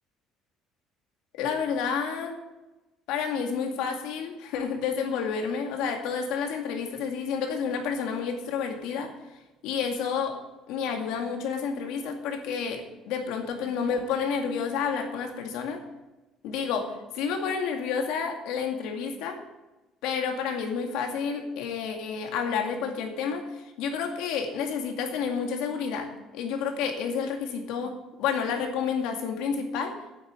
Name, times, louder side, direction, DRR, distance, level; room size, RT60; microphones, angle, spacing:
voice 1, 1.3-2.4 3.1-9.1 9.6-10.4 10.7-15.8 16.4-19.4 20.0-29.9, left 6 dB, 75° left, 4 dB, 2.2 m, -30 dB
9.3 x 8.6 x 7.5 m, 1.1 s
cardioid pair, 170°, 0 cm